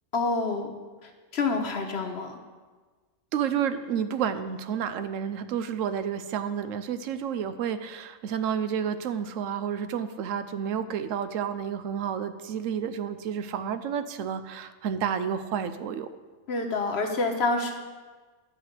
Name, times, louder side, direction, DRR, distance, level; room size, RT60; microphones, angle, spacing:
voice 1, 0.1-0.7 1.0-2.4 16.5-17.7, left 3 dB, 55° left, 3 dB, 1.3 m, -28 dB
voice 2, 3.3-16.1, right 8 dB, 85° right, 11 dB, 1.0 m, -30 dB
10.5 x 4.9 x 8.0 m, 1.4 s
omnidirectional pair, 1.3 m